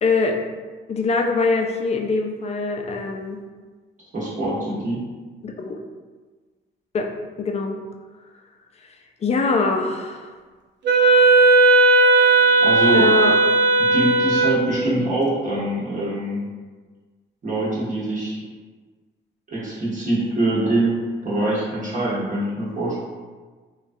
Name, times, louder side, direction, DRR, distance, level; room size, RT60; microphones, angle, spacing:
voice 1, 0.0-0.4 0.9-3.4 5.4-5.8 6.9-7.1 7.4-7.8 9.2-10.3 12.9-13.4, left 4 dB, 35° left, 3 dB, 0.4 m, -23 dB
voice 2, 4.1-5.0 12.1-13.1 13.8-16.4 17.4-18.4 19.5-23.0, right 1 dB, 40° right, -7 dB, 1.0 m, -24 dB
Wind instrument woodwind instrument, 10.8-14.7, right 3 dB, 65° right, 0.5 m, -15 dB
3.2 x 2.3 x 2.6 m, 1.4 s
cardioid pair, 90°, 20 cm